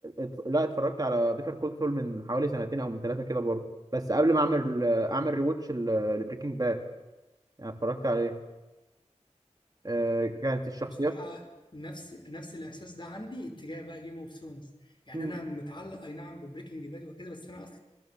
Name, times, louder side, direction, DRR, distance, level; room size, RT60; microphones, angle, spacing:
voice 1, 0.0-3.6 3.9-6.8 7.6-8.4 9.8-11.1 15.1-15.3, right 1 dB, 30° right, 4 dB, 2.8 m, -28 dB
voice 2, 10.8-11.4 11.7-17.8, left 1 dB, 45° left, 4 dB, 5.2 m, -42 dB
27.5 x 20.0 x 7.7 m, 1.1 s
wide cardioid pair, 55°, 12 cm